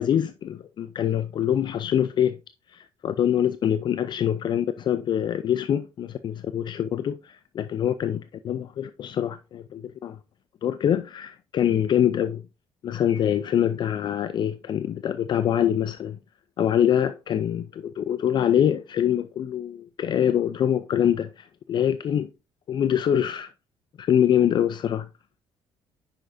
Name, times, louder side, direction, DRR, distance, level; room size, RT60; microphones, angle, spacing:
voice 1, 0.0-2.4 2.7-10.2 10.6-12.4 12.8-16.2 16.6-22.3 22.7-23.5 24.0-25.1, left 10 dB, 45° left, 0.4 m, -24 dB
9.3 x 6.4 x 2.6 m
cardioid pair, 125°, 11 cm